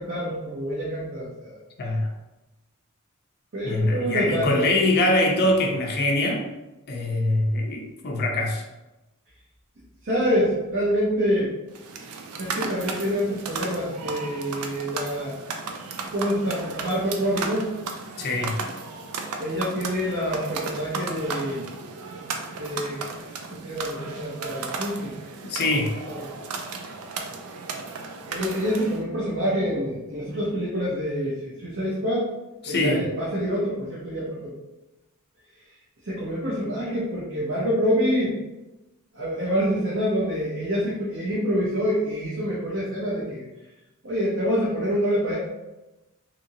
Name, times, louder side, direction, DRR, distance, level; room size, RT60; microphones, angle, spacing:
voice 1, 0.0-1.6 3.5-4.8 10.0-11.5 12.4-15.4 16.0-17.8 19.4-21.7 22.6-25.2 26.1-26.3 28.3-32.3 32.6-34.5 36.0-38.4 39.1-43.4 44.0-45.3, equal, 60° right, -8 dB, 0.8 m, -26 dB
voice 2, 1.8-2.1 3.6-6.5 6.9-8.6 18.2-18.5 25.5-25.9 32.6-33.0, left 2 dB, 45° left, 0 dB, 0.5 m, -23 dB
sound 1, 11.7-29.0, right 4 dB, 80° right, 0.4 m, -35 dB
2.9 x 2.6 x 2.6 m, 1.0 s
head